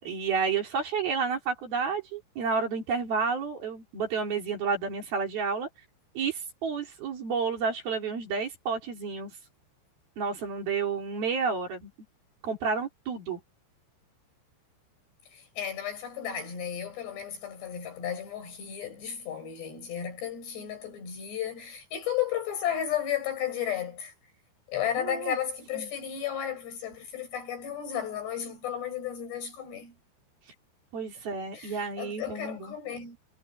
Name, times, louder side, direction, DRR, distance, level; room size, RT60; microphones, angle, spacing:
voice 1, 0.0-5.7 6.2-9.3 10.2-11.9 12.4-13.4 25.0-25.4 25.8-25.9 30.9-32.7, right 5 dB, 55° right, 5.4 m, -30 dB
voice 2, 15.3-24.1 24.7-29.9 31.5-33.2, left 9 dB, 60° left, 8.5 m, -33 dB
omnidirectional pair, 5.4 m